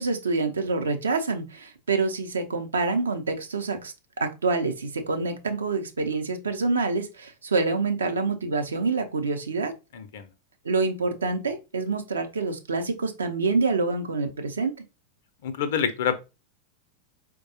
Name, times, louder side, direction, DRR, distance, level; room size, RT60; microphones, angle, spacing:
voice 1, 0.0-9.7 10.6-14.7, right 3 dB, 70° right, 0.6 m, -27 dB
voice 2, 9.9-10.3 15.4-16.2, left 7 dB, 55° left, 0.6 m, -27 dB
4.5 x 2.2 x 2.8 m
figure-of-eight pair, 90°, 0 cm